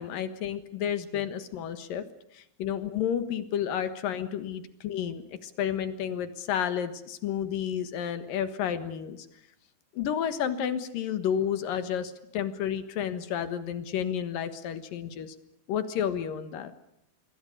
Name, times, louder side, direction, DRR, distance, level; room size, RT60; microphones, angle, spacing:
voice 1, 0.0-2.1 2.3-9.2 9.9-15.3 15.7-16.7, left 9 dB, 65° left, 11 dB, 3.0 m, -31 dB
26.5 x 22.5 x 6.6 m, 0.79 s
omnidirectional pair, 4.4 m